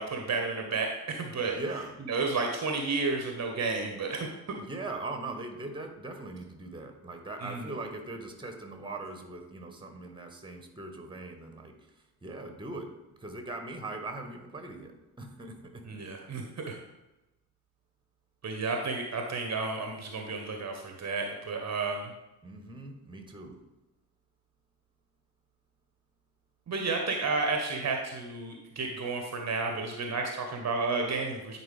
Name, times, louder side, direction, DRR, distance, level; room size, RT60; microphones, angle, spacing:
voice 1, 0.0-1.6 2.0-4.3 7.4-7.7 15.8-16.8 18.4-22.1 26.7-31.6, right 3 dB, 35° right, 2 dB, 1.0 m, -32 dB
voice 2, 1.5-1.9 4.7-11.7 12.2-12.9 13.2-15.8 22.4-23.6, right 2 dB, 10° right, 5 dB, 1.1 m, -40 dB
9.5 x 4.3 x 3.3 m, 0.99 s
figure-of-eight pair, 40°, 48 cm